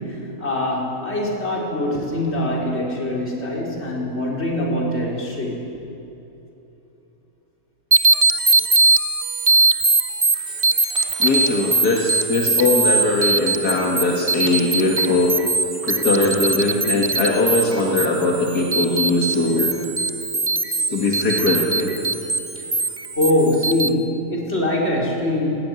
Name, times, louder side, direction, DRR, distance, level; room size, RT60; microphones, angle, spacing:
voice 1, 0.0-5.6 10.3-11.4 15.0-15.1 15.8-15.9 22.5-22.6 23.2-25.6, left 1 dB, 40° left, -3 dB, 4.4 m, -23 dB
sound 1, 7.9-23.9, right 3 dB, 35° right, 0.6 m, -21 dB
voice 2, 11.2-15.3 15.9-19.7 20.7-21.9, left 2 dB, 75° left, -2 dB, 2.4 m, -20 dB
17.5 x 16.0 x 9.8 m, 3.0 s
omnidirectional pair, 1.7 m